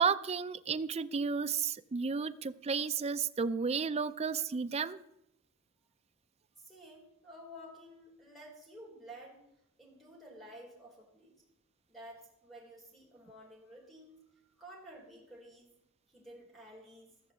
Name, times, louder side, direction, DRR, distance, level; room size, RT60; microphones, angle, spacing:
voice 1, 0.0-5.0, right 5 dB, 30° right, 11 dB, 0.4 m, -32 dB
voice 2, 6.6-9.4 9.8-11.4 11.9-14.2 14.6-15.7 16.1-17.1, equal, ahead, -1 dB, 3.9 m, -52 dB
14.5 x 6.8 x 7.4 m, 0.81 s
head